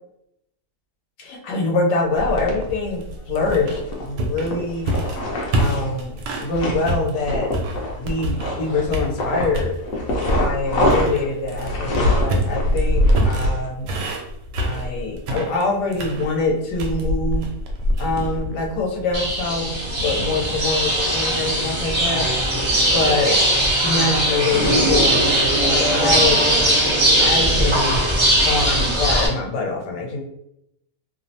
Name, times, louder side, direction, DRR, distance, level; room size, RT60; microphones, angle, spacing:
voice 1, 1.2-5.0 5.6-7.5 8.0-9.8 10.4-13.9 14.6-17.5 18.0-19.7 20.0-22.3 22.9-23.4 23.8-26.5 27.1-28.0 28.4-30.2, left 3 dB, 85° left, 0 dB, 1.3 m, -24 dB
sound 1, 2.2-2.5 3.4-4.1 4.4-5.9 6.3-6.9 7.2-8.9 9.2-13.7, left 1 dB, 65° left, 1.0 m, -25 dB
sound 2, 2.2-6.5 6.9-8.6 8.9-9.7 10.2-20.7, equal, 85° right, 1.2 m, -25 dB
sound 3, 19.1-29.3, right 1 dB, 45° right, 0.3 m, -19 dB
3.0 x 2.0 x 2.6 m, 0.81 s
omnidirectional pair, 1.8 m